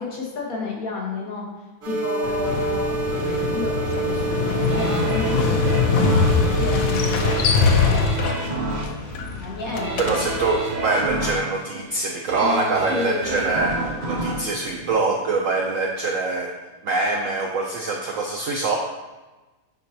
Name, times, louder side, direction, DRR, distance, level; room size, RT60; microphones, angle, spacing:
voice 1, 0.0-1.5 1.8-3.0 3.5-5.3 6.0-8.3 9.4-10.2 12.4-13.3, left 4 dB, 50° left, -2 dB, 1.5 m, -31 dB
sound 1, 1.8-7.4, right 4 dB, 60° right, 2.7 m, -27 dB
Motorcycle, 2.2-10.6, left 5 dB, 80° left, 1.4 m, -23 dB
sound 2, 4.7-15.6 16.1-16.2, right 2 dB, 40° right, 0.6 m, -30 dB
voice 2, 10.0-16.5 16.8-18.8, right 3 dB, 90° right, 1 dB, 0.7 m, -24 dB
8.0 x 5.3 x 2.8 m, 1.2 s
omnidirectional pair, 2.1 m